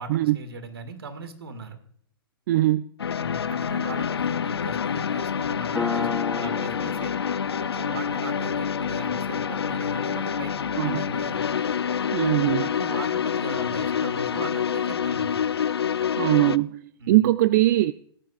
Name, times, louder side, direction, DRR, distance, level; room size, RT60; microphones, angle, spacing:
voice 1, 0.0-1.8 3.2-7.1 7.6-10.5 10.8-11.4 12.6-15.4 17.0-17.3, right 3 dB, 75° right, 1.8 m, -39 dB
voice 2, 2.5-2.8 10.8-11.0 12.1-12.7 16.2-17.9, right 16 dB, 45° right, 0.4 m, -21 dB
sound 1, 3.0-16.6, left 7 dB, 80° left, 0.5 m, -27 dB
Piano, 5.8-12.9, left 5 dB, ahead, 1.9 m, -36 dB
19.0 x 10.5 x 2.4 m
hypercardioid pair, 120°, 13 cm